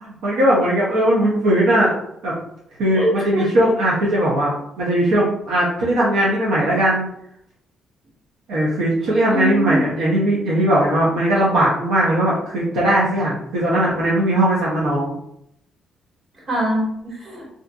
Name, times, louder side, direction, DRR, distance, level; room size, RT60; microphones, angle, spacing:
voice 1, 0.0-1.9 2.2-2.3 2.8-7.1 8.5-15.1, right 1 dB, 85° right, -6 dB, 0.7 m, -19 dB
voice 2, 2.9-3.5 9.3-9.9 16.5-17.5, right 1 dB, 45° right, -4 dB, 1.4 m, -23 dB
2.6 x 2.5 x 2.3 m, 0.75 s
cardioid pair, 90°, 0 cm